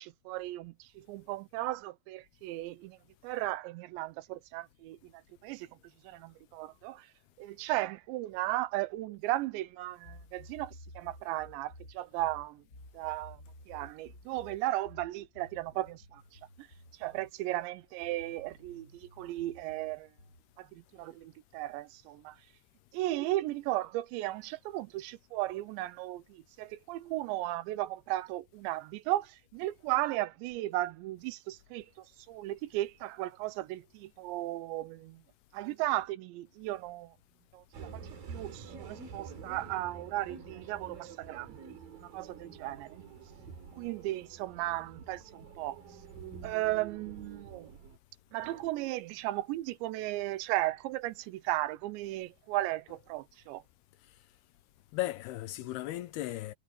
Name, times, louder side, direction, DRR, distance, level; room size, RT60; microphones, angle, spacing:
voice 1, 0.0-3.0 3.2-5.7 6.0-7.1 7.4-12.6 12.9-13.4 13.7-16.7 17.0-20.1 20.6-22.4 22.9-35.2 35.5-37.1 37.5-43.1 43.8-45.8 46.4-47.7 48.3-53.6, right 16 dB, 85° right, 3.1 m, -36 dB
sound 1, 10.0-17.3 18.0-20.5, left 1 dB, 60° left, 0.8 m, -54 dB
sound 2, 37.7-48.0, right 5 dB, 55° right, 5.0 m, -48 dB
voice 2, 54.9-56.5, left 15 dB, 75° left, 2.5 m, -36 dB
omnidirectional pair, 5.0 m